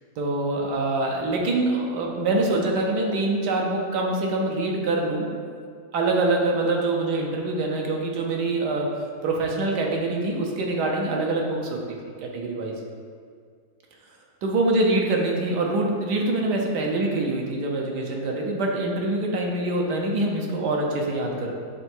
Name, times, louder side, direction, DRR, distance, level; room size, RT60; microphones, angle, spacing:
voice 1, 0.2-5.3 5.9-8.9 9.2-11.8 12.2-12.7 14.4-21.5, right 2 dB, 90° right, 0 dB, 1.4 m, -25 dB
6.9 x 3.4 x 4.4 m, 2.1 s
omnidirectional pair, 1.7 m